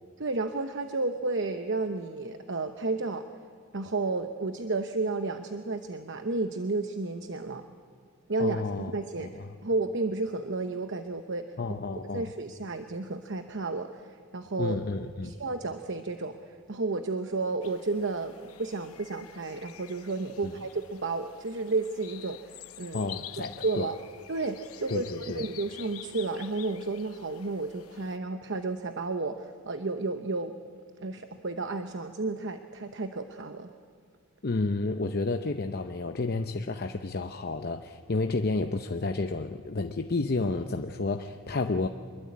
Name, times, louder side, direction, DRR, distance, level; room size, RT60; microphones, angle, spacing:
voice 1, 0.2-3.3 3.7-7.6 8.3-11.6 12.0-14.8 15.2-23.1 23.4-23.9 24.3-30.5 31.0-33.7, right 3 dB, 55° right, 7 dB, 1.0 m, -32 dB
voice 2, 8.4-8.9 9.2-9.5 11.6-12.3 14.6-15.4 22.9-23.9 24.9-25.5 34.4-41.9, left 3 dB, 45° left, 6 dB, 0.7 m, -31 dB
sound 1, 17.6-28.2, left 12 dB, 80° left, 0.9 m, -48 dB
25.5 x 22.0 x 8.6 m, 2.1 s
head